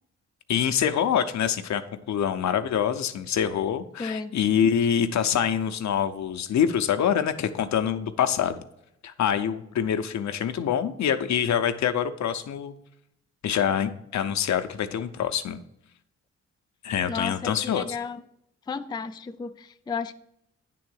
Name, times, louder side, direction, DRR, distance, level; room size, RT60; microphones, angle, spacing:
voice 1, 0.5-1.8 2.1-8.6 9.0-12.7 13.4-15.6 16.8-17.8, left 8 dB, 65° left, 9 dB, 0.7 m, -25 dB
voice 2, 4.0-4.3 17.1-18.2 18.7-20.1, left 5 dB, 15° left, 9 dB, 0.4 m, -33 dB
9.3 x 3.8 x 6.3 m, 0.78 s
cardioid pair, 85°, 30 cm